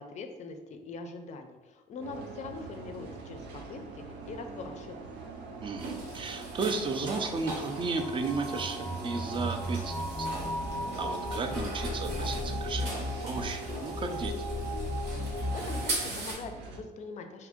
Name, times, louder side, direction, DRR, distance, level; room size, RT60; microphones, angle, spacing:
voice 1, 0.0-5.1 15.2-17.5, left 4 dB, 45° left, 6 dB, 0.4 m, -42 dB
sound 1, 2.0-16.8, right 3 dB, 90° right, 0.5 m, -44 dB
sound 2, 4.7-15.9, left 1 dB, 5° left, 0.8 m, -36 dB
voice 2, 5.6-10.3 11.0-14.3, right 4 dB, 30° right, 6 dB, 0.4 m, -34 dB
sound 3, 5.8-16.3, right 2 dB, 70° right, 1.0 m, -41 dB
2.7 x 2.5 x 3.6 m, 1.2 s
cardioid pair, 110°, 17 cm